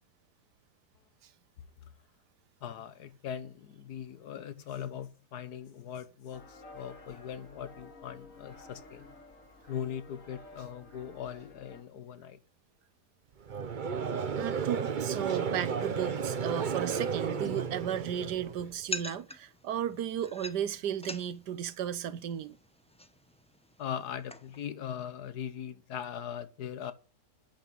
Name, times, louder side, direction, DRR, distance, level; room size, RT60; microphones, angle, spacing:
voice 1, 2.6-9.1 9.7-12.4 23.8-26.9, left 9 dB, 70° left, 1.7 m, -40 dB
sound 1, 6.3-11.8, left 2 dB, 50° left, 2.6 m, -52 dB
Conversation / Crowd, 13.5-18.8, right 6 dB, 40° right, 0.7 m, -33 dB
voice 2, 14.3-22.6, right 9 dB, 80° right, 1.5 m, -34 dB
sound 2, 17.4-24.7, left 1 dB, 5° left, 0.6 m, -46 dB
10.5 x 8.1 x 8.9 m
omnidirectional pair, 1.8 m